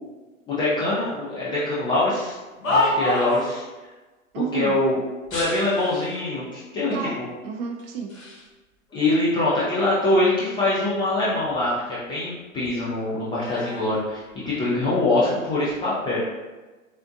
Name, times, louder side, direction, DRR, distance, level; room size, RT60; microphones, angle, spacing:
voice 1, 0.5-2.4 2.6-3.6 4.5-5.0 5.3-7.2 8.9-16.2, left 2 dB, 15° left, -9 dB, 0.3 m, -23 dB
sound 1, 2.2-3.5 5.2-6.2 6.9-7.0 7.8-8.5 8.9-10.4 10.7-12.4 12.6-14.8 15.5-15.8, left 2 dB, 85° left, 1.1 m, -31 dB
voice 2, 4.3-4.8 6.9-8.3 14.6-15.3, right 5 dB, 45° right, 2 dB, 0.6 m, -32 dB
3.5 x 2.4 x 2.6 m, 1.2 s
hypercardioid pair, 110°, 40 cm